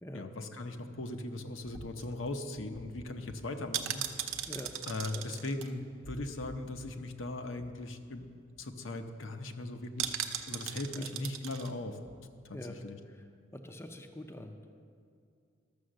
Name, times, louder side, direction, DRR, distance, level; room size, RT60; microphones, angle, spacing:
voice 1, 0.1-4.0 4.9-8.3 8.6-10.2 10.5-12.0 12.8-13.0, left 2 dB, 70° left, 5 dB, 0.8 m, -39 dB
sound 1, 1.6-6.9 7.2-7.3 7.6-7.8 8.2-8.3 8.6-8.9 10.0-11.7 12.1-12.2, right 9 dB, 80° right, 0.7 m, -40 dB
voice 2, 13.5-14.8, left 1 dB, 15° left, 5 dB, 0.6 m, -45 dB
12.5 x 6.9 x 6.4 m, 2.3 s
head